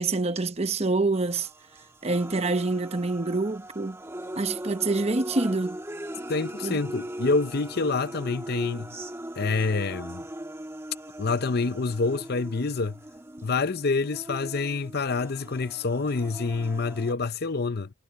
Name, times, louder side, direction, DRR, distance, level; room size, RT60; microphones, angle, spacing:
voice 1, 0.0-1.5 2.0-4.0 4.3-5.8 6.6-6.8, right 3 dB, 30° right, 0.9 m, -26 dB
sound 1, 1.1-17.1, right 1 dB, 15° right, 1.3 m, -40 dB
voice 2, 6.3-9.0 9.4-10.2 11.2-13.0 13.4-17.9, left 4 dB, 50° left, 0.7 m, -27 dB
head